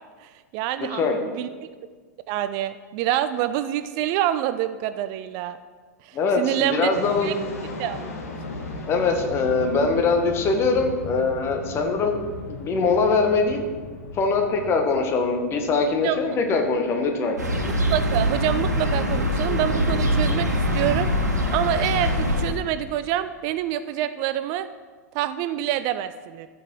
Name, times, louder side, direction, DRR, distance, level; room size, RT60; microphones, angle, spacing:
voice 1, 0.2-1.0 1.3-1.5 2.3-5.6 6.0-6.9 7.2-7.3 7.8-8.0 16.0-16.2 17.9-21.1 21.5-24.7 25.1-26.5, right 12 dB, 40° right, 12 dB, 0.4 m, -26 dB
voice 2, 0.8-1.2 6.1-7.4 8.9-12.2 12.5-13.6 14.1-17.4, left 4 dB, 30° left, 4 dB, 1.5 m, -22 dB
sound 1, 6.9-23.6, left 2 dB, 60° left, 1.6 m, -39 dB
sound 2, 17.4-22.5, equal, 80° right, 1.5 m, -23 dB
13.5 x 6.1 x 4.7 m, 1.5 s
figure-of-eight pair, 90°, 9 cm